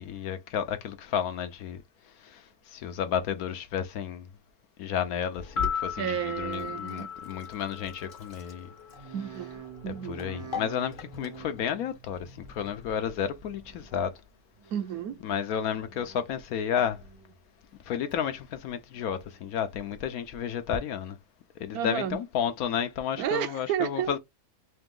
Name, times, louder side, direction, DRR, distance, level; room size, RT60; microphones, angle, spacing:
voice 1, 0.0-1.8 2.2-4.3 4.8-8.7 9.9-14.1 15.2-17.0 17.9-21.2 21.6-24.2, left 8 dB, 75° left, 1.1 m, -32 dB
sound 1, 5.4-9.6 9.8-10.0, left 7 dB, 55° left, 1.4 m, -36 dB
Sink (filling or washing), 5.4-20.8, left 5 dB, 40° left, 0.9 m, -46 dB
voice 2, 6.0-7.1 9.1-10.2 14.7-15.2 21.7-22.2 23.2-24.1, right 10 dB, 75° right, 1.1 m, -32 dB
sound 2, 8.9-14.2 14.6-15.2 15.6-16.3 16.7-17.4 17.8-18.5 19.0-19.5 20.1-20.2, right 6 dB, 55° right, 0.3 m, -48 dB
3.4 x 2.8 x 3.7 m
omnidirectional pair, 1.6 m